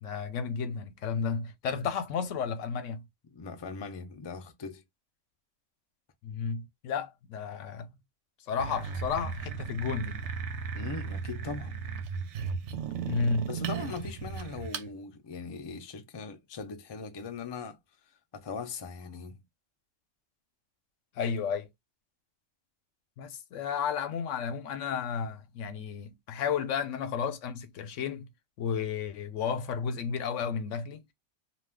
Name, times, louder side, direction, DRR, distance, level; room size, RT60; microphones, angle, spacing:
voice 1, 0.0-3.1 6.2-7.9 8.5-10.2 13.1-13.5 21.2-21.7 23.2-28.3 28.6-31.0, left 6 dB, 85° left, 1.0 m, -32 dB
voice 2, 3.3-4.8 10.7-11.8 13.5-17.8 18.3-19.4, left 5 dB, 35° left, 0.4 m, -40 dB
sound 1, 8.6-14.9, right 6 dB, 75° right, 0.8 m, -36 dB
2.3 x 2.3 x 3.4 m
omnidirectional pair, 1.2 m